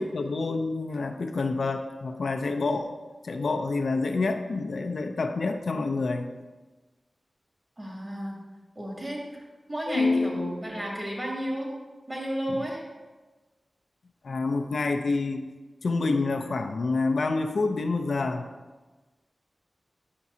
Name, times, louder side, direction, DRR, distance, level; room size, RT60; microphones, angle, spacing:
voice 1, 0.0-2.9 3.2-6.3 9.9-10.5 12.5-12.6 14.2-15.4 15.8-18.5, left 3 dB, 80° left, 5 dB, 0.5 m, -27 dB
voice 2, 7.8-8.4 8.7-9.4 9.7-11.7 12.1-12.8, equal, 35° right, -3 dB, 2.4 m, -32 dB
9.4 x 5.9 x 2.7 m, 1.2 s
cardioid pair, 55°, 0 cm